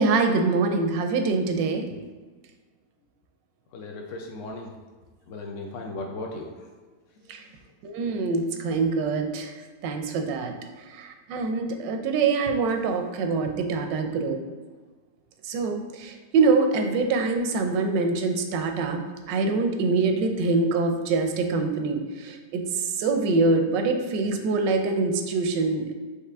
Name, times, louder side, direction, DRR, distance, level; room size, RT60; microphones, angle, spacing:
voice 1, 0.0-1.8 7.3-7.4 7.8-9.5 9.8-10.5 10.9-14.4 15.4-25.9, right 3 dB, 85° right, 5 dB, 1.2 m, -24 dB
voice 2, 3.7-4.7 5.3-6.7 7.2-7.5, left 2 dB, 85° left, 1 dB, 0.6 m, -37 dB
4.9 x 2.9 x 3.4 m, 1.4 s
omnidirectional pair, 1.9 m